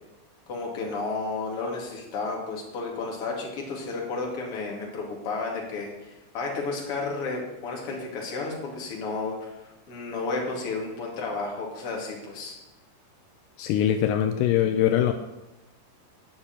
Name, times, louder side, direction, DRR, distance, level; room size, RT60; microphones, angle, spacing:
voice 1, 0.5-12.5, left 3 dB, 40° left, -2 dB, 2.7 m, -32 dB
voice 2, 13.6-15.1, left 10 dB, 85° left, 7 dB, 2.6 m, -22 dB
9.6 x 6.8 x 9.0 m, 1.0 s
omnidirectional pair, 5.0 m